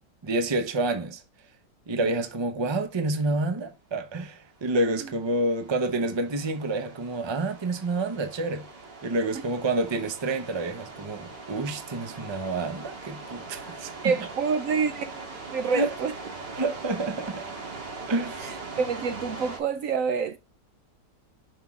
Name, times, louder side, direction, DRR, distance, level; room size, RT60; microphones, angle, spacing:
voice 1, 0.2-1.2 1.9-8.7 9.0-13.9 15.7-15.9 16.5-17.4 18.1-18.6, right 2 dB, 30° right, 0.5 m, -28 dB
sound 1, 4.5-19.6, right 3 dB, 90° right, 2.5 m, -41 dB
voice 2, 14.0-16.1 18.4-20.4, right 5 dB, 65° right, 0.9 m, -28 dB
5.9 x 5.4 x 3.6 m
omnidirectional pair, 1.9 m